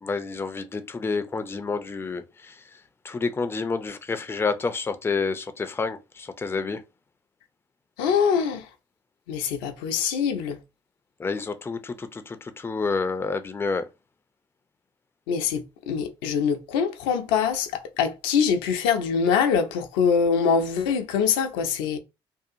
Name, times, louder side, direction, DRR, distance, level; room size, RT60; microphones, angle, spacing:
voice 1, 0.0-2.6 3.0-6.8 11.2-13.9, left 4 dB, 20° left, 0.4 m, -29 dB
voice 2, 8.0-8.7 9.3-10.6 15.3-22.0, left 6 dB, 75° left, 0.5 m, -24 dB
2.7 x 2.3 x 2.5 m
hypercardioid pair, 50°, 13 cm